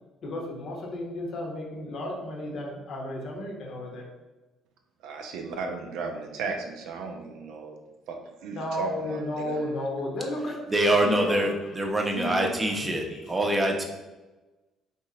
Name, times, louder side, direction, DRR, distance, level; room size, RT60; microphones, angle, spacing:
voice 1, 0.2-4.1 8.5-13.5 13.8-13.9, left 1 dB, 50° left, 0 dB, 0.8 m, -34 dB
voice 2, 5.0-7.8 8.1-9.6, right 4 dB, 65° right, 3 dB, 0.4 m, -35 dB
voice 3, 10.7-13.8, right 1 dB, 20° right, 1 dB, 0.7 m, -25 dB
3.8 x 2.7 x 2.7 m, 1.1 s
figure-of-eight pair, 50°, 0 cm